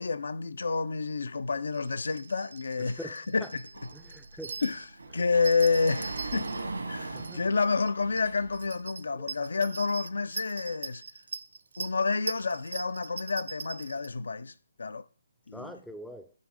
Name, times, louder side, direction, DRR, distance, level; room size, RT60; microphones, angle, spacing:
voice 1, 0.0-3.7 4.6-6.6 6.9-11.0 11.8-15.1 15.5-15.8, left 4 dB, 70° left, 0.4 m, -29 dB
sound 1, 1.7-4.9 5.4-6.7 7.0-7.9 8.2-8.3 8.5-14.1, right 5 dB, 65° right, 0.5 m, -41 dB
voice 2, 2.8-3.1 3.4-3.5 3.9-4.6 7.1-7.4 9.2-9.3 15.5-16.3, equal, ahead, 0.4 m, -43 dB
Sliding door, 3.7-8.7, right 3 dB, 85° right, 1.7 m, -40 dB
9.6 x 3.2 x 4.9 m
figure-of-eight pair, 145°, 0 cm